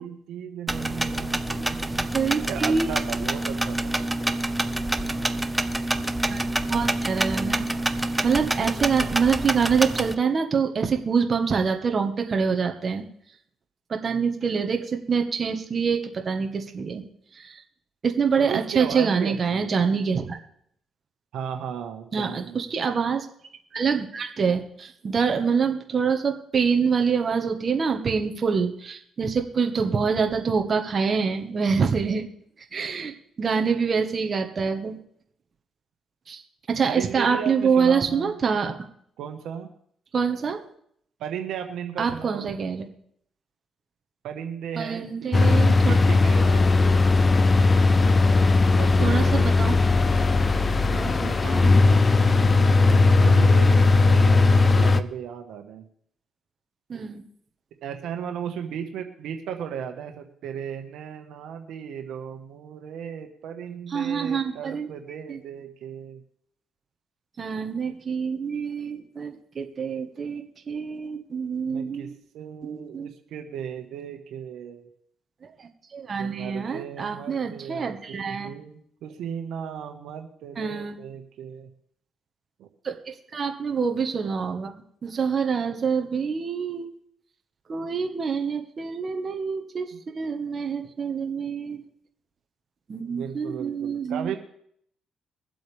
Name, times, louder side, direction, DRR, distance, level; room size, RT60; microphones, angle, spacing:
voice 1, 0.0-2.1 2.5-3.9 4.2-4.3 18.4-19.9 21.3-22.6 36.9-38.3 39.2-39.7 41.2-42.6 44.2-47.3 48.8-49.5 50.8-51.2 52.6-55.8 56.9-57.1 57.8-66.2 71.7-72.1 72.3-74.9 76.2-78.0 78.3-81.7 82.6-82.7 89.9-90.0 93.0-94.4, right 8 dB, 80° right, 5 dB, 1.4 m, -36 dB
sound 1, 0.7-10.1, right 1 dB, 10° right, 0.8 m, -27 dB
voice 2, 2.1-3.2 6.3-6.4 6.7-7.7 8.2-13.0 13.9-17.0 17.3-17.6 18.0-20.4 22.1-23.3 23.7-32.3 32.7-35.0 36.3-36.4 36.7-38.7 40.1-40.6 42.0-42.8 44.7-45.9 49.0-49.8 50.9-51.8 53.2-53.5 56.9-57.2 63.9-64.9 65.3-65.4 67.4-72.2 72.6-73.1 75.4-78.5 80.6-81.0 82.8-84.7 85.0-86.9 87.7-89.9 90.1-91.8 92.9-94.3, right 5 dB, 45° right, 5 dB, 1.4 m, -26 dB
sound 2, 45.3-55.0, left 3 dB, 30° left, 0.6 m, -18 dB
23.5 x 7.8 x 3.5 m, 0.67 s
cardioid pair, 90°, 0 cm